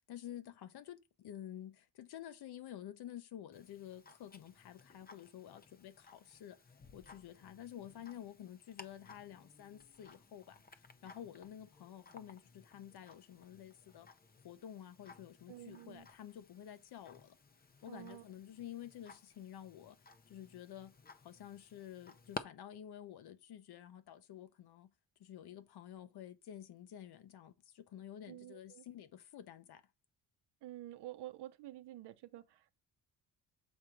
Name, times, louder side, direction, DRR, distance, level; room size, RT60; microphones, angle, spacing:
voice 1, 0.1-6.6 6.9-14.1 14.4-17.4 17.8-20.0 20.3-21.0 21.2-24.9 25.2-29.8, left 10 dB, 65° left, 1.0 m, -51 dB
Tick-tock, 3.5-22.4, left 4 dB, 20° left, 0.6 m, -56 dB
voice 2, 15.5-16.1 17.9-18.2 28.3-28.8 30.6-32.8, right 14 dB, 70° right, 0.7 m, -50 dB
7.4 x 3.7 x 4.6 m
cardioid pair, 125°, 42 cm